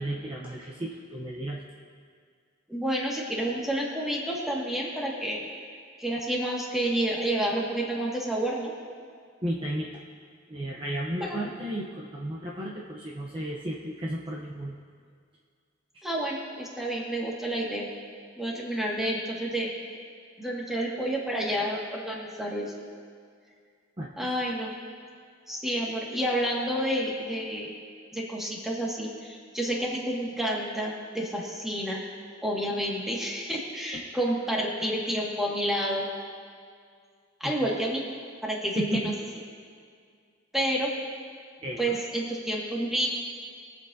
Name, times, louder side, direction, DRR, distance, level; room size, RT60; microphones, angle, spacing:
voice 1, 0.0-1.6 9.4-10.0 10.5-14.7 15.9-16.0 24.0-24.3 33.9-34.0 37.4-37.5 38.8-39.1 41.6-42.0, right 1 dB, 25° right, -4 dB, 0.8 m, -33 dB
voice 2, 2.7-5.4 6.0-8.7 11.2-11.4 16.0-17.9 18.4-19.7 20.4-22.7 24.2-24.7 25.5-27.7 28.1-32.0 32.4-36.1 37.4-38.0 38.4-39.1 40.5-40.9 41.8-43.1, right 1 dB, ahead, -4 dB, 1.9 m, -29 dB
23.0 x 8.0 x 2.8 m, 2.1 s
head